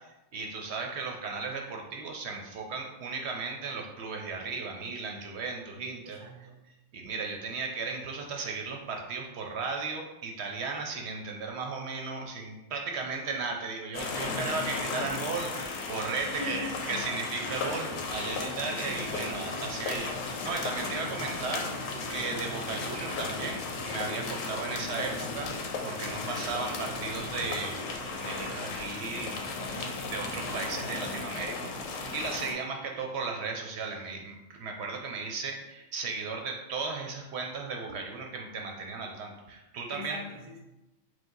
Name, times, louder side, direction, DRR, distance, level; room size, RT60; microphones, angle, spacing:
voice 1, 0.3-6.2 6.9-16.6 16.9-25.5 25.8-29.5 29.8-40.2, right 4 dB, 65° right, 2 dB, 0.8 m, -36 dB
voice 2, 6.0-6.7 16.2-17.0 39.9-40.6, left 1 dB, 30° right, 0 dB, 0.4 m, -40 dB
sound 1, 13.9-32.5, left 3 dB, 85° left, 1.0 m, -35 dB
4.6 x 2.2 x 3.8 m, 1.0 s
omnidirectional pair, 1.3 m